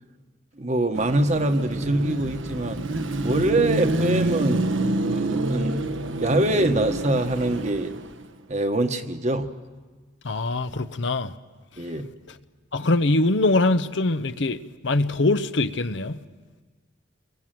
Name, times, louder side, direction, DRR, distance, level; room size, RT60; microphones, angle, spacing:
voice 1, 0.6-2.8 3.2-7.9 8.5-9.5 11.8-12.1, right 1 dB, 35° right, 1.2 m, -24 dB
Car passing by / Traffic noise roadway noise / Engine, 0.9-8.3, right 2 dB, 80° right, 1.2 m, -27 dB
voice 2, 10.2-11.3 12.7-14.6 14.8-16.2, left 2 dB, 65° left, 0.8 m, -23 dB
28.0 x 22.5 x 7.7 m
head